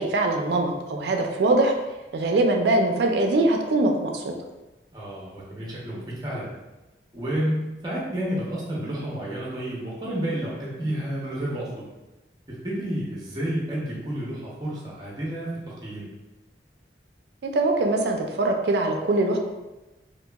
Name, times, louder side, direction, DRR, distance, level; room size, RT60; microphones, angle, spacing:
voice 1, 0.0-1.7 2.1-4.3 17.4-19.4, right 2 dB, 70° right, 3 dB, 0.3 m, -22 dB
voice 2, 4.9-6.5 7.1-11.9 12.5-15.5 15.8-16.1, right 1 dB, 20° right, -5 dB, 0.6 m, -30 dB
2.8 x 2.5 x 2.2 m, 1.1 s
head